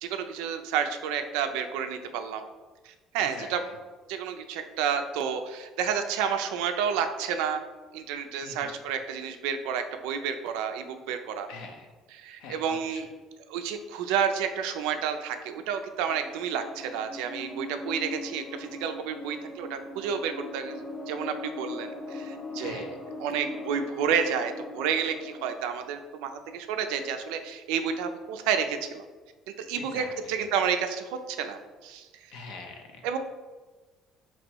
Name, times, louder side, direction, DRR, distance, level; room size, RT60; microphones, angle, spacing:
voice 1, 0.0-2.4 2.8-3.6 4.1-7.6 7.9-11.5 12.2-13.0 13.5-23.0 23.2-29.0 29.6-32.1 33.0-33.2, right 7 dB, 90° right, 7 dB, 0.4 m, -30 dB
voice 2, 3.2-3.8 8.4-8.8 11.5-11.9 12.4-13.0 22.6-23.0 29.8-30.4 32.3-33.1, left 3 dB, 80° left, 2 dB, 0.7 m, -44 dB
sound 1, 16.1-25.6, left 2 dB, 25° left, 0.6 m, -40 dB
3.0 x 3.0 x 4.4 m, 1.3 s
supercardioid pair, 95°, 0 cm